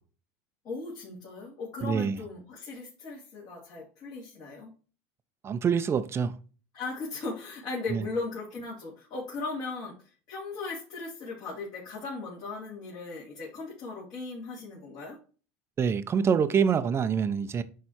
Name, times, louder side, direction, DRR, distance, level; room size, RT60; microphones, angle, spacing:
voice 1, 0.6-4.7 6.7-15.2, left 3 dB, 50° left, 3.2 m, -37 dB
voice 2, 1.8-2.1 5.4-6.3 7.9-8.0 15.8-17.6, right 7 dB, 30° right, 0.7 m, -25 dB
9.6 x 3.4 x 4.4 m
supercardioid pair, 115°, 9 cm